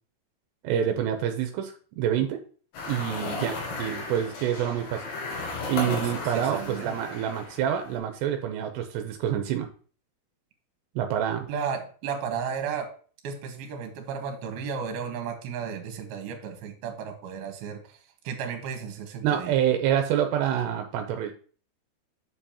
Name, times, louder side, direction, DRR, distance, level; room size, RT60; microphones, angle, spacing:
voice 1, 0.6-2.4 2.9-5.0 5.7-9.7 11.0-11.5 19.2-21.3, right 10 dB, 85° right, 5 dB, 2.8 m, -27 dB
sound 1, 2.7-8.0, left 3 dB, 80° left, 4.1 m, -35 dB
voice 2, 5.8-6.9 11.5-12.9 13.2-18.0 18.2-19.6, right 6 dB, 70° right, 4 dB, 3.1 m, -34 dB
8.4 x 6.9 x 2.9 m, 0.42 s
omnidirectional pair, 4.9 m